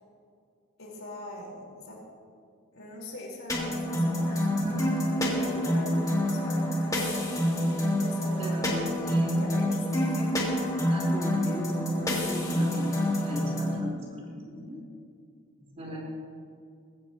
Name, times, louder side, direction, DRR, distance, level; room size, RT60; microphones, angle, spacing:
voice 1, 0.8-2.0 2.7-4.9 5.1-10.8, left 1 dB, 70° left, -3 dB, 4.7 m, -42 dB
sound 1, 3.5-13.8, equal, 15° left, 2.1 m, -27 dB
voice 2, 4.4-4.9 8.4-9.4 10.8-14.8 15.7-16.0, equal, 30° right, -4 dB, 4.5 m, -37 dB
20.5 x 16.5 x 3.1 m, 2.4 s
head